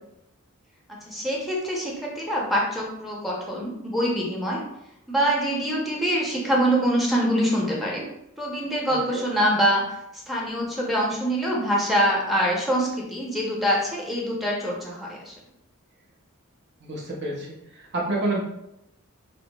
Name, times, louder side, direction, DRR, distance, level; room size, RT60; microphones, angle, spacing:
voice 1, 0.9-4.6 5.1-8.0 8.4-9.8 10.3-15.3, equal, ahead, -3 dB, 0.7 m, -24 dB
voice 2, 16.8-17.5 17.7-18.4, right 2 dB, 50° right, -3 dB, 0.7 m, -28 dB
5.6 x 2.0 x 2.3 m, 0.82 s
head